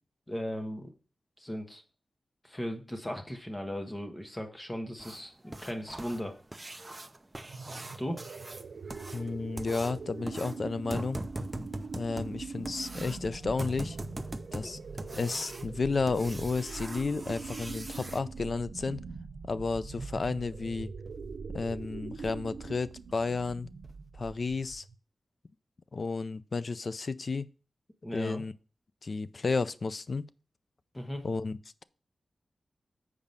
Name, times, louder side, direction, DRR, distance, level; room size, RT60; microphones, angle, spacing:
voice 1, 0.3-0.9 1.4-1.8 2.4-6.3 8.0-8.2 28.0-28.4 30.9-31.2, equal, 15° left, 1.2 m, -37 dB
sound 1, 5.0-18.2 20.5-20.6 21.1-21.2 21.6-21.7 22.2-22.3 22.7-22.9 23.3-23.4 23.8-23.9, right 1 dB, 15° right, 0.6 m, -42 dB
sound 2, 7.4-25.0, right 5 dB, 80° right, 0.7 m, -43 dB
voice 2, 9.1-11.2 11.9-14.0 14.5-19.0 19.5-20.9 21.5-23.7 24.2-24.8 25.9-27.5 28.1-28.5 29.0-30.2 31.2-31.8, left 4 dB, 45° left, 0.4 m, -32 dB
7.3 x 4.9 x 5.3 m
wide cardioid pair, 145°, 0 cm